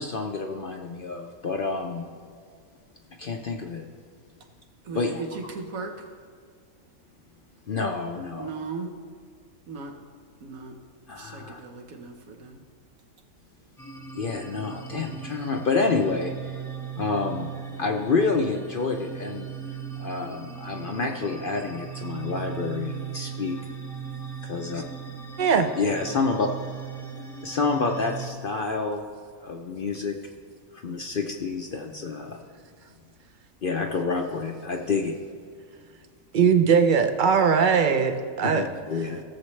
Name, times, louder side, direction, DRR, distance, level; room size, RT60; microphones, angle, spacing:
voice 1, 0.0-2.1 3.2-3.9 4.9-5.2 7.7-8.5 11.1-11.6 14.1-16.6 17.0-17.5 17.8-19.5 20.0-23.6 24.4-24.8 25.8-26.5 27.4-29.0 29.4-30.2 30.7-32.4 33.6-35.1 38.4-39.2, left 4 dB, 50° left, 3 dB, 0.7 m, -28 dB
voice 2, 4.8-6.1 8.3-8.9 9.7-10.0 10.4-10.8 11.2-12.6, right 4 dB, 75° right, 3 dB, 1.5 m, -37 dB
sound 1, 13.8-28.3, right 7 dB, ahead, 0.8 m, -38 dB
voice 3, 25.4-25.7 36.3-38.7, right 6 dB, 50° right, 7 dB, 0.6 m, -20 dB
17.0 x 7.2 x 3.2 m, 2.1 s
omnidirectional pair, 1.5 m